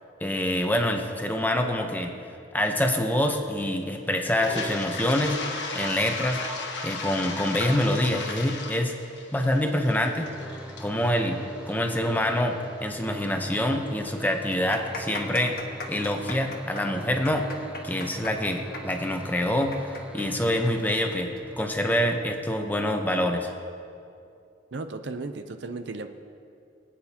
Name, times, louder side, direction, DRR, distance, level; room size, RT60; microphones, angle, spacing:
voice 1, 0.2-2.1 2.5-5.4 5.7-6.4 6.8-8.9 9.3-10.3 10.8-11.4 11.7-15.6 15.9-21.3 21.6-23.5, left 1 dB, 10° left, 3 dB, 0.8 m, -26 dB
Toilet flush, 4.3-12.2, left 3 dB, 80° left, 1.3 m, -35 dB
sound 1, 10.2-21.6, equal, 5° right, 0.4 m, -42 dB
sound 2, 13.3-13.4 13.7-13.8 14.4-21.7 21.9-22.0 22.8-23.1, left 3 dB, 55° left, 1.4 m, -40 dB
voice 2, 24.7-26.1, right 3 dB, 75° right, 8 dB, 0.6 m, -35 dB
23.0 x 8.7 x 2.9 m, 2.5 s
head